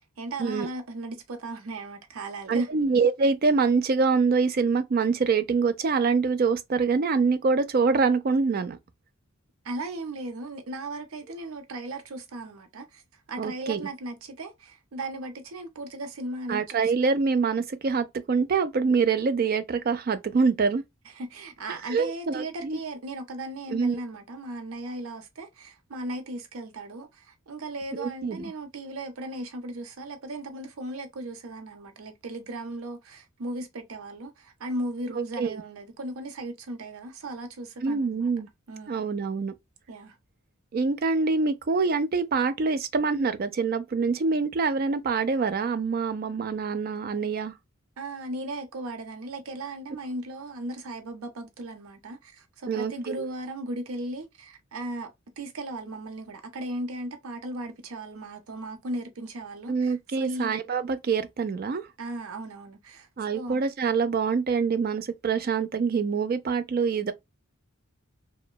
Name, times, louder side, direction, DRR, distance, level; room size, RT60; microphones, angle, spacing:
voice 1, 0.0-2.7 9.6-13.0 13.3-16.9 21.1-38.3 38.7-39.0 39.9-40.2 48.0-55.1 55.4-60.6 62.0-63.1 63.3-63.6, right 1 dB, 85° right, 0.6 m, -37 dB
voice 2, 2.5-8.8 13.4-13.9 16.5-20.8 21.9-22.8 23.7-24.0 28.0-28.5 35.2-35.6 37.8-38.5 38.9-39.5 40.7-47.5 52.7-53.3 59.7-61.8 63.2-67.1, right 4 dB, 45° right, 0.4 m, -25 dB
3.0 x 2.1 x 2.2 m
head